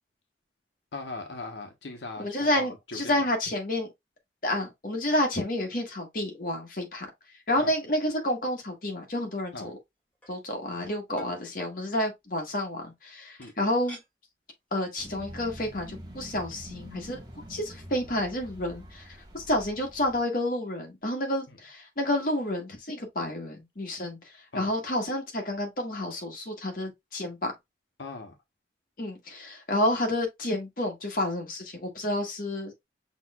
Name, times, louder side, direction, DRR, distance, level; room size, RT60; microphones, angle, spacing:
voice 1, 0.9-3.3 7.6-7.7 9.5-9.7 13.4-13.5 21.5-21.6 24.5-24.8 28.0-28.4, left 3 dB, 90° left, 1.0 m, -39 dB
voice 2, 2.2-3.9 4.4-7.1 7.5-9.8 10.3-14.0 14.7-17.2 17.5-27.5 29.0-32.7, left 1 dB, 50° left, 1.3 m, -30 dB
sound 1, 10.0-10.4 11.2-11.8 13.4-14.1 14.6-14.7 15.0-15.3 16.2-16.3 16.5-16.7, left 1 dB, 10° left, 1.7 m, -49 dB
sound 2, 15.0-20.2, equal, 25° right, 1.1 m, -46 dB
6.1 x 3.1 x 2.3 m
head